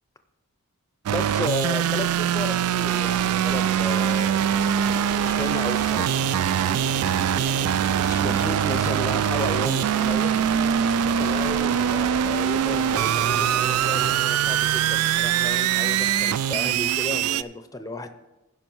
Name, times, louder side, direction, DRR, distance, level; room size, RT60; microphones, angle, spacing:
voice 1, 1.1-4.4 5.2-6.2 8.1-10.4 11.2-18.1, left 2 dB, 15° left, 9 dB, 0.6 m, -33 dB
sound 1, 1.1-17.4, right 9 dB, 80° right, 0.3 m, -23 dB
sound 2, 2.9-14.1, right 3 dB, 55° right, 0.9 m, -34 dB
15.5 x 5.5 x 4.6 m, 1.0 s
head